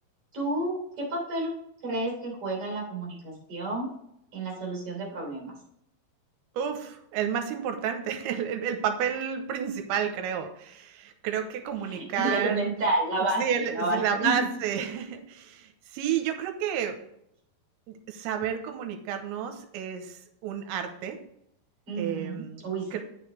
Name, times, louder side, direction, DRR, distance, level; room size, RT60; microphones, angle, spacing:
voice 1, 0.3-1.5 1.8-3.9 4.3-5.6 11.9-14.5 21.9-23.0, right 2 dB, 35° right, -1 dB, 3.6 m, -30 dB
voice 2, 6.5-12.7 13.4-17.0 17.9-21.2 22.0-22.6 22.9-23.0, right 8 dB, 85° right, 6 dB, 3.1 m, -31 dB
8.6 x 6.7 x 3.3 m, 0.77 s
omnidirectional pair, 5.2 m